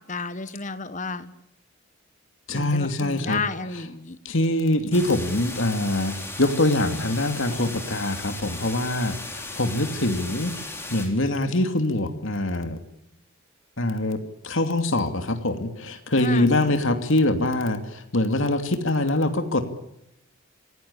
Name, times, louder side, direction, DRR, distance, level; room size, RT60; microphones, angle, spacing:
voice 1, 0.1-1.3 2.5-4.2 16.2-16.8, left 4 dB, 35° left, 13 dB, 1.3 m, -32 dB
voice 2, 2.5-3.4 4.2-10.5 10.9-12.8 13.8-19.7, left 1 dB, 60° left, 7 dB, 2.7 m, -24 dB
sound 1, 4.9-11.1, left 2 dB, 10° left, 4.5 m, -36 dB
26.5 x 18.0 x 8.7 m, 0.80 s
head